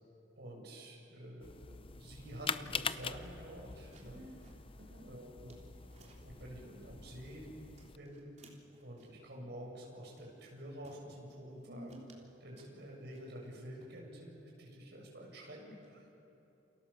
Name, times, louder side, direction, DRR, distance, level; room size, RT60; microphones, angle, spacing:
voice 1, 0.4-4.2 5.0-5.6 6.0-7.5 7.8-8.5 8.8-12.0 12.4-16.1, right 1 dB, 65° right, -1 dB, 7.9 m, -49 dB
sound 1, 1.4-8.0, left 6 dB, 30° left, 0.6 m, -44 dB
sound 2, 3.4-6.3 6.7-7.5 7.7-9.3 9.8-9.9 10.2-11.1 11.5-11.6 11.9-13.5 13.8-14.4, right 2 dB, 40° right, 3.7 m, -64 dB
voice 2, 4.0-5.1 11.7-12.1, equal, 85° right, -3 dB, 3.3 m, -52 dB
29.0 x 28.0 x 7.3 m, 3.0 s
head